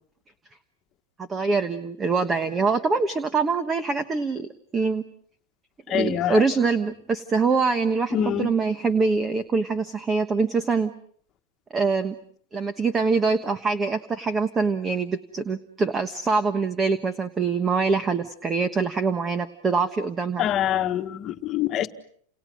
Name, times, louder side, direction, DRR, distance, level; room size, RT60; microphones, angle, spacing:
voice 1, 1.2-5.0 5.9-10.9 11.7-12.1 12.5-20.5, right 4 dB, 15° right, 1.2 m, -24 dB
voice 2, 5.9-6.4 8.1-8.5 20.4-21.9, left 11 dB, 30° left, 1.7 m, -25 dB
30.0 x 28.0 x 6.3 m
supercardioid pair, 160°, 0 cm